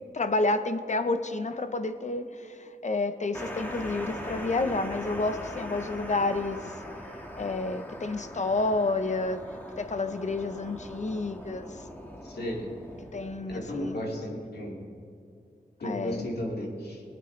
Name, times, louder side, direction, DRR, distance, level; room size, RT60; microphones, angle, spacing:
voice 1, 0.1-6.6 7.4-9.4 9.8-11.7 13.1-14.0 15.8-16.3, left 2 dB, 45° left, 9 dB, 0.8 m, -30 dB
sound 1, 3.3-13.8, equal, 10° left, 1.7 m, -41 dB
voice 2, 12.3-12.7 13.5-14.8 15.8-17.0, equal, 80° left, -2 dB, 2.4 m, -34 dB
21.5 x 9.1 x 3.2 m, 2.3 s
wide cardioid pair, 65°, 16 cm